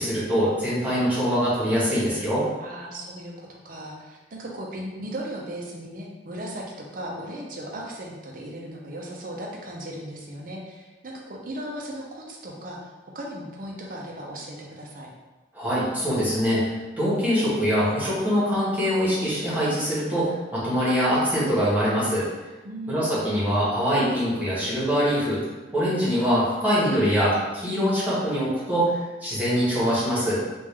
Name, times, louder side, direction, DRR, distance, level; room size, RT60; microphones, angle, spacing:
voice 1, 0.0-2.4 15.5-22.2 22.9-25.4 25.7-28.9 29.2-30.4, equal, 10° right, -10 dB, 1.3 m, -23 dB
voice 2, 2.6-15.1 22.6-23.3, right 1 dB, 50° right, -2 dB, 0.7 m, -37 dB
3.6 x 2.6 x 3.3 m, 1.2 s
head